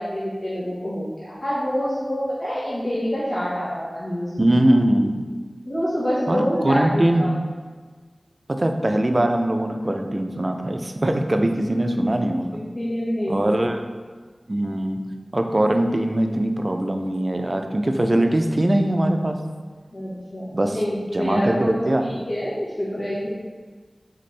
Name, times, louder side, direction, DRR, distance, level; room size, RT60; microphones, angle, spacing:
voice 1, 0.0-4.5 5.6-7.3 11.8-11.9 12.7-13.6 19.9-21.7 22.0-23.3, equal, 75° left, -10 dB, 1.2 m, -26 dB
voice 2, 4.4-5.2 6.3-7.3 8.5-12.6 13.3-13.8 14.5-15.0 15.3-19.4 20.5-20.8 21.1-22.1, right 1 dB, 40° right, 5 dB, 0.4 m, -21 dB
4.1 x 3.7 x 3.3 m, 1.5 s
wide cardioid pair, 50°, 0 cm